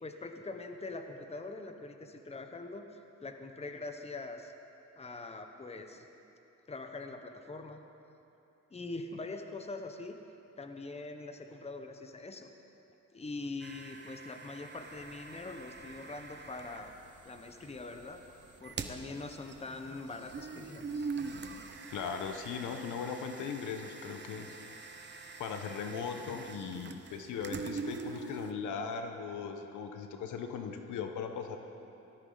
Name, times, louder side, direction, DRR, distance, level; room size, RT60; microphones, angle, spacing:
voice 1, 0.0-2.8 3.2-4.5 5.0-6.1 6.7-7.8 8.7-10.2 10.6-12.5 13.1-16.9 17.2-18.2 18.6-21.1, left 3 dB, 20° left, 6 dB, 1.1 m, -43 dB
sound 1, 13.6-16.8 18.5-28.5, right 4 dB, 35° right, 1.0 m, -43 dB
sound 2, 14.7-22.3, right 3 dB, 85° right, 4.0 m, -61 dB
voice 2, 21.9-24.6 25.4-31.6, left 6 dB, 80° left, 5 dB, 1.2 m, -38 dB
18.5 x 13.5 x 4.0 m, 2.9 s
cardioid pair, 90°, 30 cm